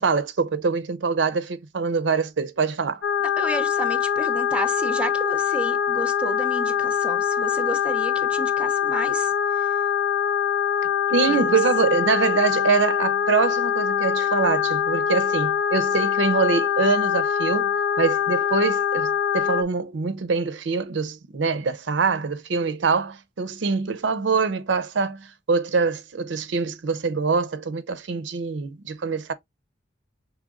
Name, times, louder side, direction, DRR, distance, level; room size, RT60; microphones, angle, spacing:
voice 1, 0.0-3.0 11.1-29.3, right 4 dB, 70° right, 0.5 m, -24 dB
sound 1, 3.0-19.6, left 8 dB, 85° left, 0.5 m, -23 dB
voice 2, 3.4-9.3 11.3-11.6, right 1 dB, 5° right, 0.5 m, -32 dB
6.2 x 3.3 x 2.4 m
head